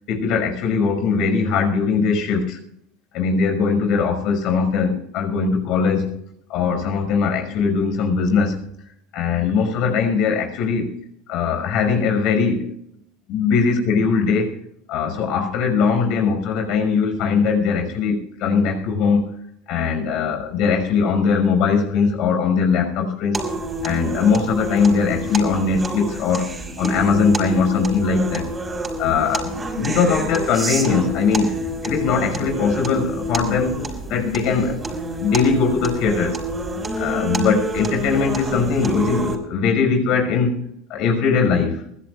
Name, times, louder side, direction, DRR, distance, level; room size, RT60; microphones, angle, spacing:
voice 1, 0.1-2.6 3.1-6.1 6.5-8.6 9.1-10.9 11.3-12.7 13.3-14.6 14.9-19.3 19.7-23.4 23.8-28.5 29.0-29.5 29.8-31.5 31.8-34.8 35.2-36.4 37.0-40.6 40.9-41.8, left 5 dB, 60° left, 5.8 m, -20 dB
sound 1, 23.3-39.4, right 1 dB, 20° right, 5.4 m, -28 dB
23.0 x 16.0 x 2.5 m
hypercardioid pair, 90°, 0 cm